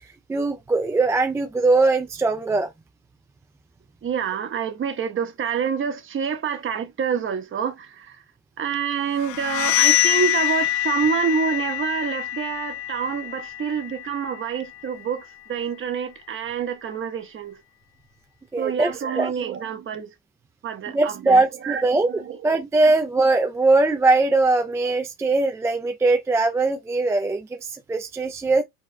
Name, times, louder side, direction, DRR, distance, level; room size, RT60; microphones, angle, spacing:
voice 1, 0.3-2.7 18.5-19.4 20.9-28.6, right 3 dB, 5° right, 0.3 m, -21 dB
voice 2, 4.0-8.1 8.6-15.2 15.5-17.6 18.6-20.1 20.6-21.8 22.3-22.4, right 7 dB, 30° right, 1.2 m, -27 dB
sound 1, 9.2-14.8, left 14 dB, 55° left, 0.6 m, -25 dB
5.0 x 4.0 x 2.2 m
supercardioid pair, 125°, 43 cm